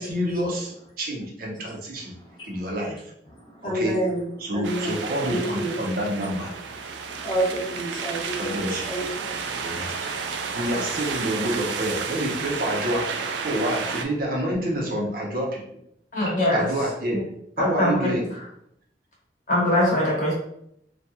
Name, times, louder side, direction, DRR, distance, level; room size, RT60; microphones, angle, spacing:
voice 1, 0.0-2.1 2.5-3.0 3.6-4.0 4.4-6.5 8.4-8.9 9.6-9.9 10.5-13.1 13.4-15.6 16.5-17.2 17.6-18.2, equal, 55° right, -2 dB, 0.6 m, -28 dB
voice 2, 2.2-2.6 3.3-5.8 7.1-8.6 8.9-10.6, right 1 dB, 25° left, -3 dB, 0.5 m, -30 dB
sound 1, 4.6-14.0, right 5 dB, 90° right, 0.3 m, -32 dB
voice 3, 16.1-16.7 17.6-18.1 19.5-20.3, left 1 dB, 45° left, -4 dB, 0.9 m, -22 dB
2.7 x 2.3 x 2.2 m, 0.73 s
head